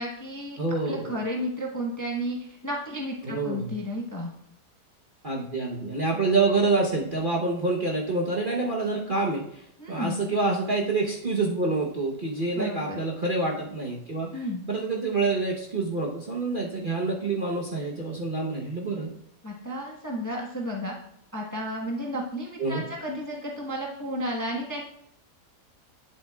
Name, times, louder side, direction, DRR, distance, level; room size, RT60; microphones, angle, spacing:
voice 1, 0.0-0.6 0.8-4.3 9.8-10.2 12.5-13.0 14.3-14.6 19.4-20.9 21.3-24.8, equal, 15° left, -2 dB, 0.9 m, -32 dB
voice 2, 0.6-1.2 3.2-3.7 5.2-19.1 22.6-22.8, right 3 dB, 35° right, -3 dB, 0.9 m, -27 dB
10.5 x 7.6 x 2.4 m, 0.70 s
omnidirectional pair, 1.9 m